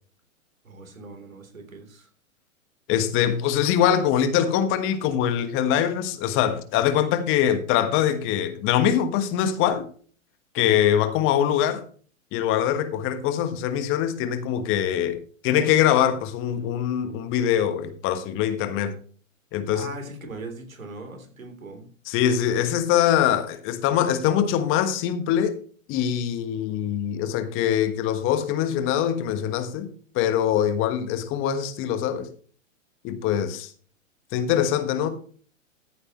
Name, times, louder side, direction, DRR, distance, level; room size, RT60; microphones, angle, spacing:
voice 1, 0.6-2.1 19.7-21.9, right 2 dB, 85° right, 3.5 m, -40 dB
voice 2, 2.9-9.9 10.5-11.8 12.3-15.2 15.4-18.9 19.5-19.9 22.1-25.6 25.9-29.9 30.1-32.3 33.0-33.7 34.3-35.1, left 10 dB, 30° left, 1.4 m, -23 dB
14.5 x 8.3 x 3.1 m
hypercardioid pair, 120°, 40 cm